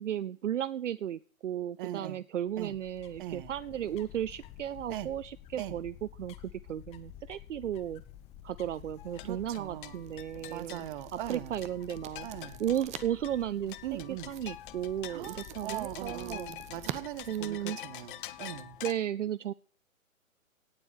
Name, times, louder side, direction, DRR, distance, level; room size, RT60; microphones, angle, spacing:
voice 1, 0.0-8.0 8.4-10.8 11.3-12.3 12.6-16.5 17.3-17.8 18.8-19.5, right 10 dB, 65° right, 18 dB, 0.7 m, -35 dB
voice 2, 1.8-2.2 2.6-2.8 3.2-3.5 4.9-5.1 5.6-5.7 9.2-10.0 10.5-11.5 12.2-12.6 13.8-14.3 15.1-18.8, right 13 dB, 40° right, 17 dB, 1.3 m, -40 dB
sound 1, 2.5-17.7, left 11 dB, 15° left, 0.7 m, -52 dB
sound 2, 9.0-18.9, left 13 dB, 40° left, 1.1 m, -46 dB
sound 3, 9.1-18.1, right 12 dB, 15° right, 1.0 m, -48 dB
17.5 x 7.2 x 8.2 m, 0.43 s
figure-of-eight pair, 125°, 41 cm